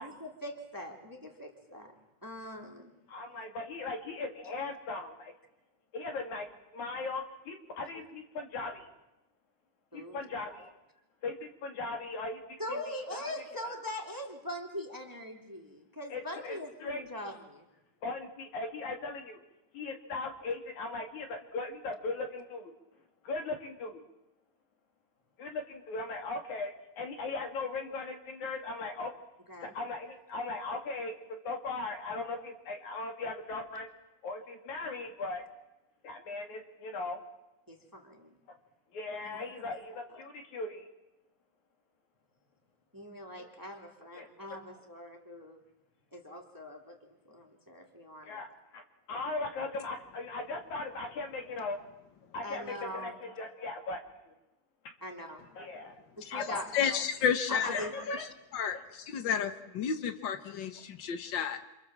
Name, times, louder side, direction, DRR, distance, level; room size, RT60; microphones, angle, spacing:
voice 1, 0.0-1.9 2.2-2.9 9.9-10.2 12.6-17.6 29.5-29.7 37.7-38.4 39.2-39.4 42.9-45.6 46.1-48.4 52.4-53.2 55.0-55.4 56.2-56.7 57.5-57.9, left 1 dB, 5° right, 2 dB, 2.4 m, -42 dB
voice 2, 3.1-5.3 5.9-8.9 9.9-10.7 11.2-13.3 13.6-13.7 16.1-17.0 18.0-19.4 19.7-22.7 23.2-24.0 25.4-29.1 29.6-31.1 31.5-33.9 34.2-35.4 36.0-37.2 38.9-40.9 43.4-43.5 44.1-44.3 48.2-48.8 49.1-51.8 52.3-54.3 55.6-56.0 56.3-57.0 57.6-58.3 58.7-58.8, left 3 dB, 55° left, 3 dB, 3.8 m, -38 dB
voice 3, 56.7-57.8 58.5-61.6, left 7 dB, 80° left, 8 dB, 1.0 m, -31 dB
29.0 x 27.0 x 7.5 m, 0.94 s
omnidirectional pair, 4.1 m